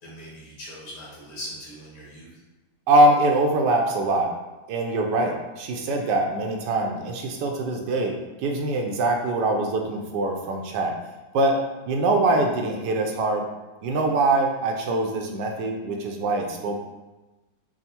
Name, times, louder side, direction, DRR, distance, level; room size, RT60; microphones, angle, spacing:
voice 1, 0.0-2.4, equal, 60° left, -6 dB, 1.8 m, -40 dB
voice 2, 2.9-4.3 4.7-10.9 11.3-11.6 11.9-13.4 13.8-16.8, right 2 dB, 85° right, 1 dB, 1.2 m, -23 dB
6.1 x 2.3 x 2.8 m, 1.1 s
omnidirectional pair, 1.8 m